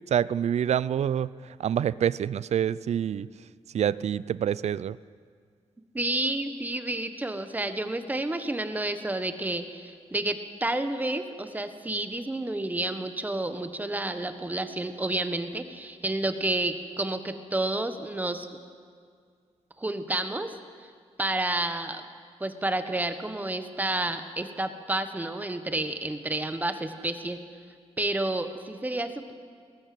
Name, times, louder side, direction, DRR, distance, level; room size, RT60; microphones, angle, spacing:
voice 1, 0.1-3.3 3.7-5.0, right 9 dB, 70° right, 19 dB, 0.5 m, -27 dB
voice 2, 5.9-18.5 19.8-20.5 21.2-22.0 22.4-27.4 28.0-29.3, right 2 dB, 15° right, 9 dB, 1.3 m, -30 dB
20.5 x 18.5 x 7.7 m, 2.1 s
wide cardioid pair, 130°, 12 cm